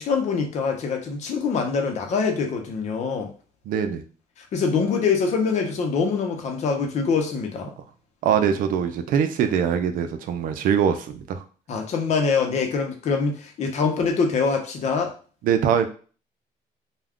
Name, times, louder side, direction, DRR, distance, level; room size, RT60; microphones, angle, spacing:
voice 1, 0.0-3.3 4.4-7.7 11.7-15.1, left 5 dB, 50° left, 3 dB, 0.7 m, -24 dB
voice 2, 3.7-4.0 8.2-11.4 15.4-15.9, right 8 dB, 65° right, 8 dB, 0.5 m, -22 dB
2.3 x 2.3 x 3.5 m, 0.39 s
cardioid pair, 120°, 15 cm